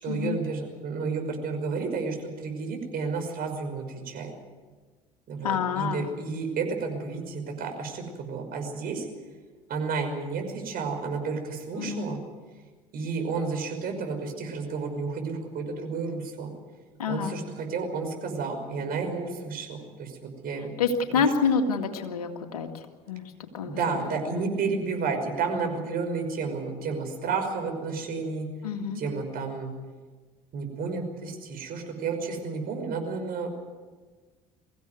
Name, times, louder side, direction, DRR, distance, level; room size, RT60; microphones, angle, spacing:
voice 1, 0.0-4.3 5.3-9.1 9.7-12.2 12.9-16.5 17.1-20.7 21.1-21.2 23.6-28.5 28.9-29.7 30.5-33.5, right 4 dB, 55° right, 4 dB, 5.6 m, -31 dB
voice 2, 5.4-6.1 11.8-12.1 17.0-17.4 20.8-22.7 23.1-23.2 23.5-23.8 24.0-24.1 28.6-29.0, left 6 dB, 85° left, 5 dB, 2.0 m, -27 dB
23.5 x 15.5 x 9.4 m, 1.4 s
hypercardioid pair, 65°, 19 cm